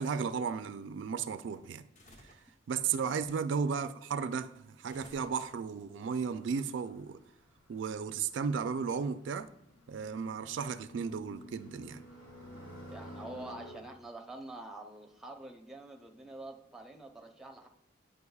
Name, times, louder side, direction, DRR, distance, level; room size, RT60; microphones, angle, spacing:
voice 1, 0.0-1.8 2.7-7.2 7.7-9.5 9.9-12.0, right 6 dB, 75° right, 11 dB, 0.3 m, -34 dB
sound 1, 1.9-2.6 4.9-5.8, left 1 dB, 45° left, 0.9 m, -57 dB
sound 2, 6.3-13.8, left 1 dB, 65° left, 2.1 m, -51 dB
voice 2, 12.9-17.7, right 2 dB, ahead, 3 dB, 0.6 m, -46 dB
9.5 x 5.2 x 2.3 m, 0.78 s
head